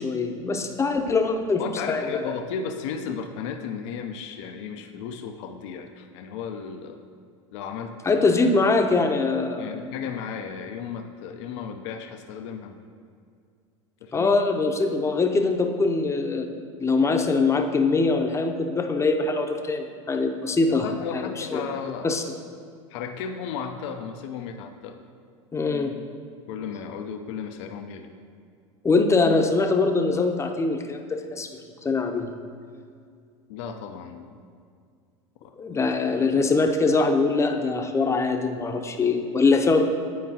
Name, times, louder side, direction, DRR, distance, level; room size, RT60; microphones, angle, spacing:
voice 1, 0.0-1.6 1.9-2.3 8.1-9.9 14.1-16.5 16.8-20.9 21.1-21.6 22.0-22.2 25.5-25.9 28.8-31.0 31.3-31.5 31.8-32.3 35.6-39.8, left 3 dB, 15° left, 4 dB, 0.6 m, -23 dB
voice 2, 1.6-7.0 7.5-8.2 9.6-12.8 14.0-14.3 20.7-22.1 22.9-25.0 26.5-28.1 33.5-34.4 35.4-35.9 36.3-36.4, left 6 dB, 70° left, 5 dB, 0.5 m, -34 dB
9.3 x 4.5 x 2.8 m, 2.2 s
hypercardioid pair, 85°, 16 cm